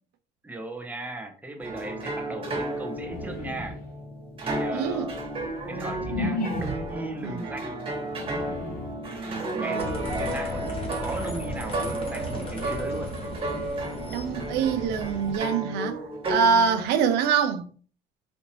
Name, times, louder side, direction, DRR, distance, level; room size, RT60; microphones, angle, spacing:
voice 1, 0.4-3.8 4.4-5.1 5.7-7.8 9.0-13.1, right 2 dB, 10° right, 0.7 m, -37 dB
sound 1, 1.6-16.9, right 2 dB, 35° right, 1.4 m, -33 dB
sound 2, 2.9-4.0 4.6-7.1 8.0-9.1, left 2 dB, 50° left, 1.3 m, -33 dB
voice 2, 4.7-5.1 7.2-7.4 14.1-16.0 16.3-17.7, right 6 dB, 85° right, 0.5 m, -24 dB
sound 3, 9.8-15.4, left 1 dB, 30° left, 1.3 m, -36 dB
4.1 x 2.6 x 2.9 m
cardioid pair, 110°, 17 cm